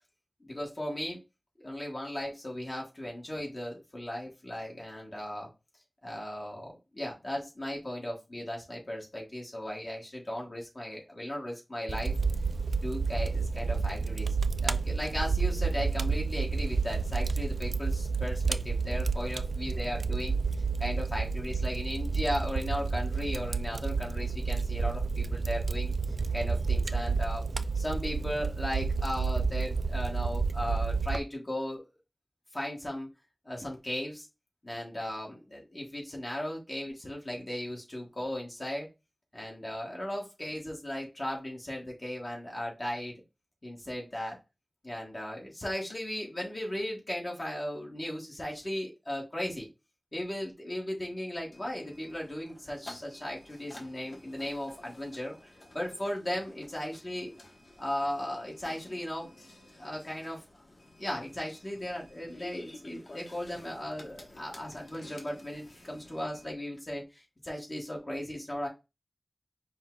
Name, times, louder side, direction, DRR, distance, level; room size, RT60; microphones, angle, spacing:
voice 1, 0.4-1.2 1.6-5.5 6.0-12.1 12.8-20.4 20.8-25.9 26.3-27.4 27.7-31.8 32.5-33.1 33.4-34.3 34.6-38.9 39.3-43.1 43.6-44.4 44.8-49.7 50.1-57.3 57.8-59.3 59.8-60.4 61.0-68.7, left 1 dB, 40° left, -2 dB, 1.5 m, -36 dB
Fire, 11.9-31.2, right 4 dB, 85° right, 0.3 m, -30 dB
sound 1, 51.5-66.5, left 1 dB, 60° left, 1.2 m, -52 dB
5.4 x 2.3 x 3.8 m, 0.26 s
wide cardioid pair, 75°, 0 cm